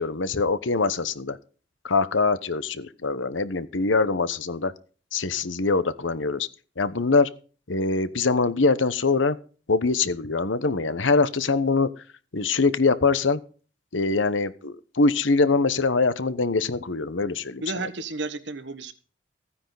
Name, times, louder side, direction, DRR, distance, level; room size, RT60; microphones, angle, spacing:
voice 1, 0.0-1.4 1.8-4.7 5.1-6.5 6.8-7.3 7.7-9.4 9.7-11.9 12.3-13.4 13.9-17.6, left 3 dB, 90° left, 15 dB, 1.0 m, -23 dB
voice 2, 17.6-18.9, right 3 dB, 70° right, 11 dB, 1.4 m, -32 dB
15.5 x 9.8 x 4.0 m, 0.39 s
head